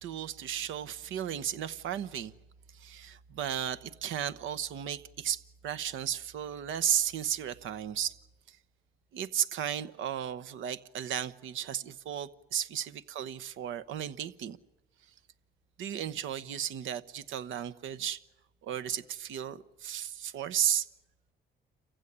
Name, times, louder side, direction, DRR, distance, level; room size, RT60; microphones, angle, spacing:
voice 1, 0.0-2.3 2.7-8.1 8.5-8.6 9.1-14.6 15.8-18.2 18.6-20.9, right 10 dB, 80° right, 1.0 m, -34 dB
27.5 x 15.5 x 9.9 m
cardioid pair, 90°, 20 cm